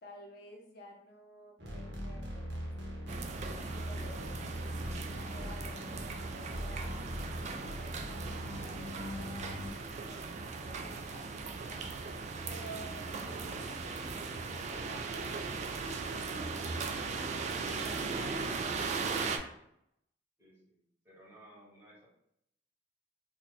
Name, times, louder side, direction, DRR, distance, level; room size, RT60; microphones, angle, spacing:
voice 1, 0.0-2.7 3.1-4.5 4.9-11.9 12.4-18.8, right 1 dB, 60° left, 0 dB, 0.6 m, -52 dB
sound 1, 1.6-9.7, equal, 75° right, 0.9 m, -41 dB
sound 2, 3.1-19.4, right 4 dB, 40° right, 0.3 m, -38 dB
voice 2, 20.4-20.8 21.0-22.1, right 1 dB, 15° right, -7 dB, 1.4 m, -58 dB
3.0 x 2.2 x 4.0 m, 0.76 s
head